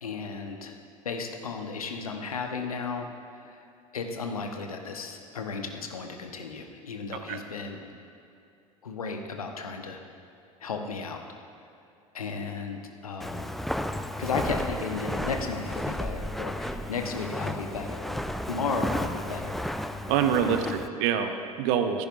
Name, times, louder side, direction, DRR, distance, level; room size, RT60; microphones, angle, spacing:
voice 1, 0.0-0.7 1.0-3.1 3.4-3.6 3.9-7.9 8.8-10.0 10.6-11.2 12.1-13.5 14.2-18.2 18.5-19.6 20.4-20.7, left 4 dB, 75° left, 4 dB, 1.1 m, -34 dB
Walk footsteps, 13.2-20.9, left 1 dB, ahead, 0.4 m, -33 dB
voice 2, 20.1-22.1, right 8 dB, 50° right, 8 dB, 1.0 m, -26 dB
17.0 x 14.5 x 2.6 m, 2.7 s
figure-of-eight pair, 70°, 18 cm